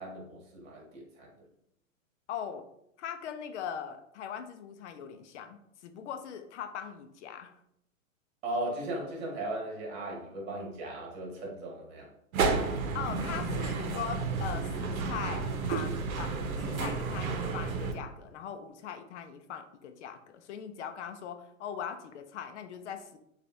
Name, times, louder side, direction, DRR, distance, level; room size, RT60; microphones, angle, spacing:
voice 1, 0.0-1.4 8.4-12.1, right 1 dB, 50° right, -1 dB, 1.7 m, -37 dB
voice 2, 2.3-2.7 3.0-7.5 12.9-23.2, left 8 dB, 55° left, 8 dB, 0.5 m, -40 dB
sound 1, 12.3-17.9, right 4 dB, 85° right, 0.8 m, -31 dB
6.6 x 2.5 x 2.6 m, 0.76 s
hypercardioid pair, 140°, 41 cm